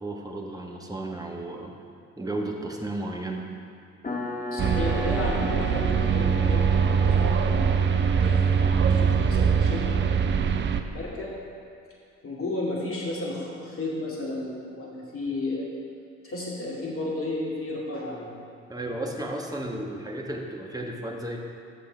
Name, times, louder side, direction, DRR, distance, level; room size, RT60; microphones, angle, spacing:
voice 1, 0.0-1.7 2.2-3.5 18.7-21.4, right 1 dB, 10° right, 0 dB, 1.3 m, -33 dB
sound 1, 4.0-10.2, left 3 dB, 20° left, 1.3 m, -37 dB
voice 2, 4.5-10.4 10.7-11.4 12.2-15.7 16.2-18.3, left 2 dB, 40° left, -4 dB, 2.2 m, -33 dB
sound 2, 4.6-10.8, right 6 dB, 30° right, 0.5 m, -22 dB
12.0 x 6.9 x 3.3 m, 2.3 s
figure-of-eight pair, 45°, 36 cm